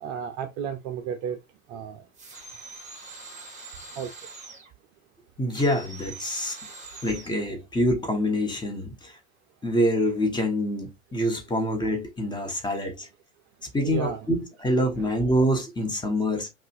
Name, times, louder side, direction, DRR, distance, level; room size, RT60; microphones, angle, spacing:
voice 1, 0.0-1.4 1.7-2.0 4.0-4.1 13.8-14.3 15.0-15.1, right 8 dB, 40° right, 0.6 m, -33 dB
sound 1, 2.1-4.7 5.5-7.4, right 3 dB, 15° right, 1.6 m, -43 dB
voice 2, 5.4-6.6 7.0-9.2 9.6-13.1 13.7-16.5, equal, 10° left, 1.3 m, -26 dB
5.3 x 2.5 x 2.6 m
figure-of-eight pair, 90°, 40 cm